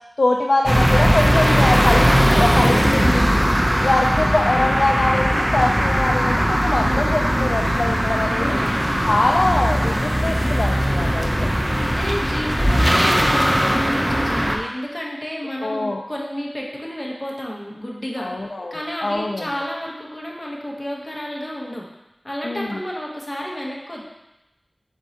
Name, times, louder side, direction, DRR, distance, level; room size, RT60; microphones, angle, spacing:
voice 1, 0.2-3.3 3.8-8.6 9.1-11.5 12.8-13.0 15.6-16.0 18.2-19.5 22.4-22.8, left 2 dB, 75° left, 0 dB, 0.3 m, -23 dB
sound 1, 0.6-14.6, equal, 10° right, 0.5 m, -19 dB
voice 2, 6.8-7.1 8.4-8.8 11.8-21.9 22.2-24.1, equal, 30° left, -2 dB, 1.0 m, -31 dB
4.5 x 4.2 x 2.8 m, 0.94 s
wide cardioid pair, 50°, 0 cm